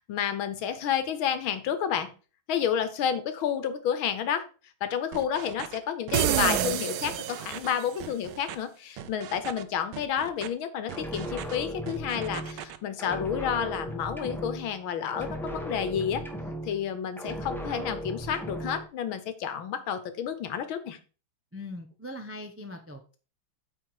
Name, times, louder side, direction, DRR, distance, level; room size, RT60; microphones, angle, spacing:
voice 1, 0.1-2.1 2.5-4.5 4.8-16.2 16.6-21.0, left 8 dB, 75° left, 11 dB, 1.8 m, -30 dB
sound 1, 5.1-5.8 6.1-6.6 7.0-7.7 8.0-8.6 9.0-9.6 9.9-10.5 10.9-11.6 11.9-12.8, right 11 dB, 90° right, 1.6 m, -41 dB
sound 2, 6.1-8.0, right 11 dB, 70° right, 1.0 m, -27 dB
sound 3, 10.9-12.7 13.0-14.8 15.1-16.9 17.2-18.9, right 1 dB, ahead, 1.3 m, -37 dB
voice 2, 21.5-23.1, left 1 dB, 20° right, 5 dB, 0.3 m, -41 dB
8.9 x 4.7 x 4.8 m, 0.36 s
omnidirectional pair, 2.2 m